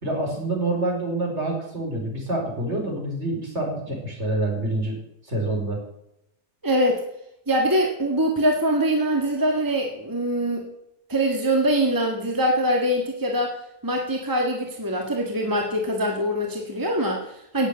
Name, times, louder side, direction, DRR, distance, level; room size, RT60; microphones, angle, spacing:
voice 1, 0.0-5.0 5.3-5.8, right 2 dB, 45° right, 0 dB, 5.2 m, -27 dB
voice 2, 6.6-7.0 7.5-10.7 11.1-13.5 13.8-17.7, equal, 15° right, 1 dB, 1.9 m, -23 dB
17.5 x 8.1 x 8.2 m, 0.82 s
omnidirectional pair, 1.6 m